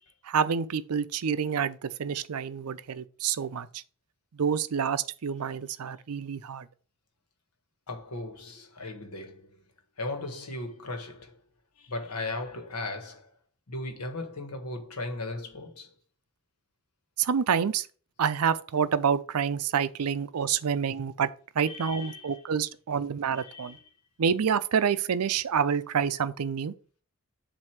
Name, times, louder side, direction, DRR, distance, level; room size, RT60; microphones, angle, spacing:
voice 1, 0.2-3.8 4.3-6.6 17.2-17.9 18.2-21.3 21.6-23.8 24.2-26.7, right 7 dB, 80° right, 0.5 m, -28 dB
voice 2, 7.9-9.6 10.0-11.4 11.8-13.3 13.7-15.9 21.6-22.4 23.4-23.9, left 2 dB, 90° left, 1.4 m, -37 dB
7.6 x 2.7 x 5.8 m
head